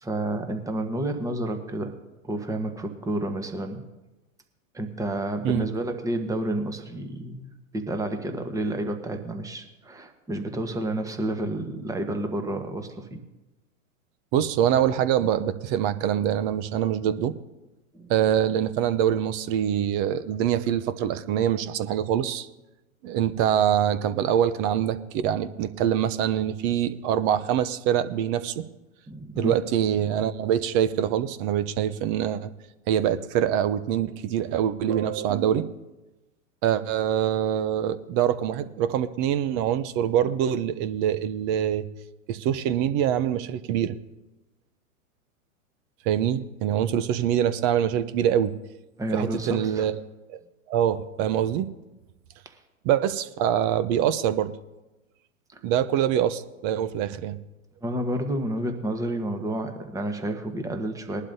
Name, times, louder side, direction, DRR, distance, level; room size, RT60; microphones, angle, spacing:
voice 1, 0.0-1.9 2.2-3.8 4.7-13.2 17.9-18.1 29.1-29.6 49.0-49.9 52.4-52.6 55.5-55.6 57.8-61.2, right 1 dB, 10° right, 6 dB, 1.1 m, -30 dB
voice 2, 14.3-17.3 18.1-22.5 23.0-28.6 29.4-32.5 32.9-35.8 36.6-41.8 42.3-44.0 46.1-48.5 49.1-49.9 50.3-50.4 50.7-51.7 52.8-54.5 55.6-57.4, right 10 dB, 40° right, 13 dB, 0.7 m, -24 dB
20.5 x 11.5 x 2.7 m, 1.0 s
hypercardioid pair, 115°, 42 cm